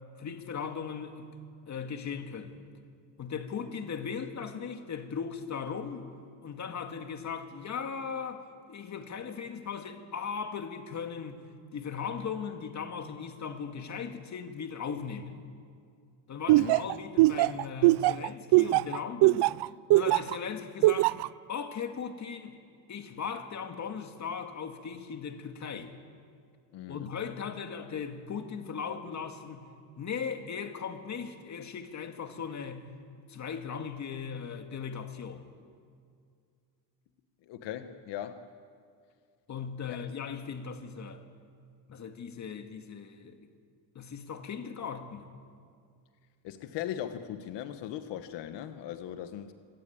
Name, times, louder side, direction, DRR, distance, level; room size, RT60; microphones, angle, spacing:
voice 1, 0.2-1.3 1.7-2.6 3.2-6.1 6.4-11.4 11.7-15.4 16.3-19.5 19.9-21.1 21.5-22.5 22.9-25.9 26.9-32.9 33.3-35.5 39.5-41.2 41.9-43.5 44.0-45.3, left 6 dB, 40° left, 2.1 m, -38 dB
Laughter, 16.5-20.4 20.8-21.3, right 20 dB, 70° right, 0.5 m, -21 dB
voice 2, 26.7-27.1 37.5-38.5 39.9-40.0 46.4-49.5, left 11 dB, 75° left, 1.3 m, -39 dB
26.0 x 17.5 x 8.8 m
cardioid pair, 125°, 42 cm